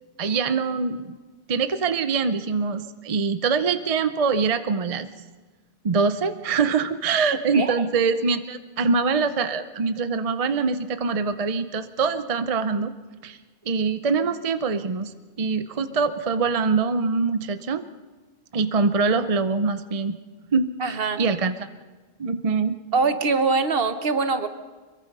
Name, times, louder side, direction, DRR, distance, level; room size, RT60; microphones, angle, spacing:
voice 1, 0.2-1.2 1.5-5.1 5.8-12.9 13.2-13.4 13.7-17.8 18.5-20.2 20.5-21.5 22.2-22.8, right 4 dB, 40° right, 10 dB, 0.7 m, -24 dB
voice 2, 7.5-7.9 20.8-21.2 22.9-24.5, right 4 dB, 65° right, 9 dB, 1.3 m, -23 dB
25.0 x 22.5 x 5.4 m, 1.3 s
omnidirectional pair, 1.1 m